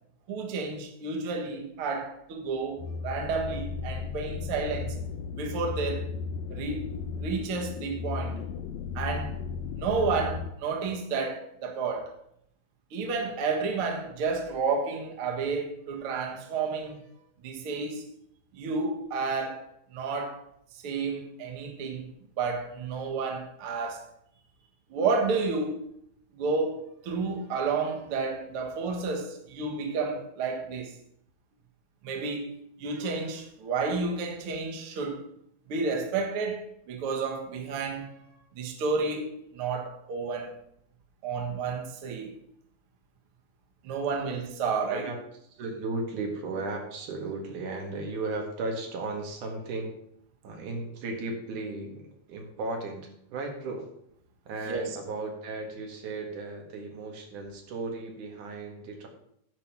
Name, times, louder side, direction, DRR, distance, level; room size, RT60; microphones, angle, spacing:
voice 1, 0.3-5.0 5.4-6.1 6.5-8.4 8.9-9.4 9.8-12.1 12.9-17.0 17.4-18.1 18.5-20.4 20.7-22.1 22.4-24.1 24.9-25.8 26.3-31.0 32.0-35.2 35.7-38.1 38.6-40.6 41.2-42.3 43.8-45.1 54.7-54.8, right 4 dB, 55° right, 2.1 m, -31 dB
sound 1, 2.8-10.5, left 5 dB, 70° left, 1.8 m, -35 dB
voice 2, 45.5-49.9 50.4-53.9 54.5-59.1, right 3 dB, 85° right, 3.3 m, -35 dB
10.0 x 5.4 x 7.5 m
omnidirectional pair, 3.5 m